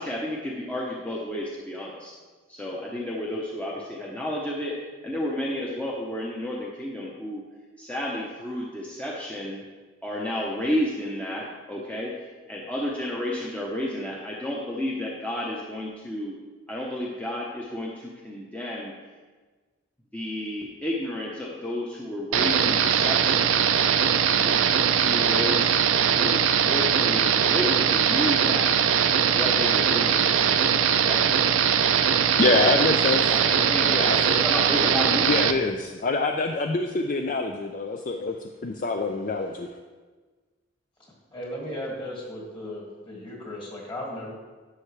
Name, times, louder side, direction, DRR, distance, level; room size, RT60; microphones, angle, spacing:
voice 1, 0.0-2.1 2.5-4.7 5.0-7.4 7.8-9.6 10.0-16.3 16.7-18.9 20.1-23.6 24.3-24.7 24.9-25.8 26.2-28.7 29.3-31.7 32.3-32.7 33.3-35.4, left 1 dB, 5° left, -4 dB, 0.8 m, -31 dB
sound 1, 22.3-35.5, right 8 dB, 90° right, 0.5 m, -21 dB
voice 2, 32.4-33.3 33.9-34.2 35.3-38.4 38.6-39.7, left 3 dB, 40° left, 5 dB, 0.4 m, -25 dB
voice 3, 41.3-44.3, left 1 dB, 25° left, -3 dB, 2.2 m, -36 dB
11.0 x 7.0 x 3.3 m, 1.4 s
head